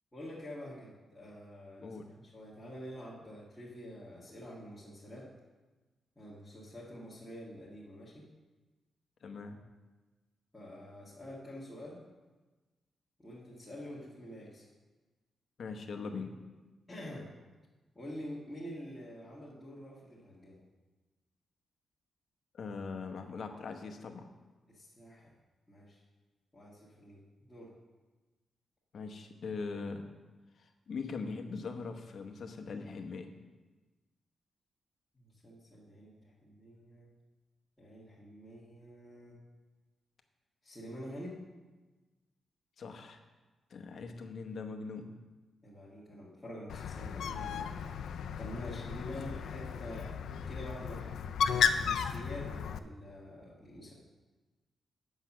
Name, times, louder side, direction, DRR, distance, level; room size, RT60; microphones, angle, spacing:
voice 1, 0.1-5.3 6.1-8.3 10.5-12.0 13.2-14.7 16.9-17.3 17.9-20.6 24.7-25.3 25.7-26.0 26.5-27.7 35.1-37.1 37.8-39.4 40.6-41.5 45.6-47.7 48.4-50.1 50.5-51.1 51.5-53.9, equal, 5° left, -9 dB, 1.6 m, -47 dB
voice 2, 9.2-9.6 15.6-16.3 22.5-24.3 28.9-30.0 30.6-33.3 42.8-43.2 43.7-45.2 48.9-49.0, left 4 dB, 55° left, 5 dB, 0.8 m, -41 dB
Bird, 46.7-52.8, left 7 dB, 80° left, 0.4 m, -34 dB
8.1 x 5.6 x 6.0 m, 1.2 s
wide cardioid pair, 150°, 0 cm